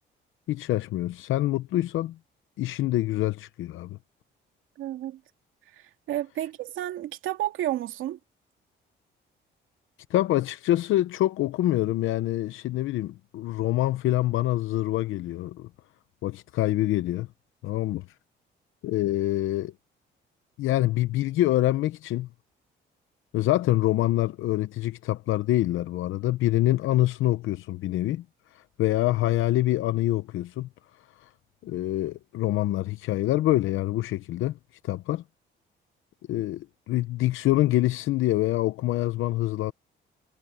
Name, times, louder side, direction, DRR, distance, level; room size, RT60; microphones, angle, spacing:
voice 1, 0.5-2.2 2.6-4.0 10.1-15.7 16.2-17.3 17.6-18.0 18.8-19.7 20.6-22.3 23.3-28.2 28.5-30.7 31.2-31.3 31.6-34.6 34.8-35.2 36.3-39.7, left 15 dB, 85° left, 0.7 m, -25 dB
voice 2, 4.8-5.2 5.7-8.2, right 13 dB, 85° right, 2.5 m, -31 dB
cardioid pair, 90°, 20 cm